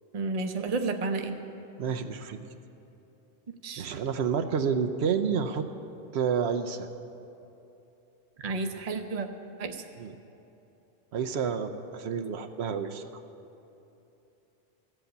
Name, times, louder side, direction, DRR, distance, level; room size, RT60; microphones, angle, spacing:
voice 1, 0.1-1.4 3.6-3.9 8.4-9.3 9.6-9.8, right 3 dB, 40° right, 6 dB, 0.8 m, -31 dB
voice 2, 1.8-2.4 3.8-5.7 6.1-6.9 10.0-10.1 11.1-13.2, right 6 dB, 85° right, 8 dB, 0.9 m, -29 dB
14.5 x 7.9 x 8.1 m, 2.9 s
omnidirectional pair, 1.1 m